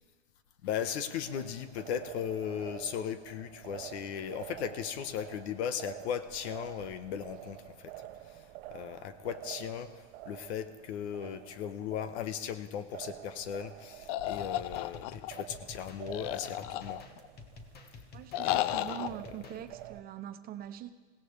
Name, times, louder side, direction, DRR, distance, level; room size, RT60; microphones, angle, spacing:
voice 1, 0.6-7.9 8.2-17.1 18.4-19.0, left 8 dB, 70° left, 11 dB, 1.2 m, -37 dB
sound 1, 1.0-20.0, right 13 dB, 60° right, 0.9 m, -49 dB
sound 2, 14.1-15.4 16.1-17.3 18.3-19.1, left 14 dB, 50° left, 0.4 m, -33 dB
sound 3, 14.4-19.6, left 4 dB, 30° left, 1.3 m, -51 dB
voice 2, 18.1-20.9, right 11 dB, 25° right, 11 dB, 0.5 m, -43 dB
21.0 x 16.5 x 3.3 m, 1.3 s
supercardioid pair, 135°, 34 cm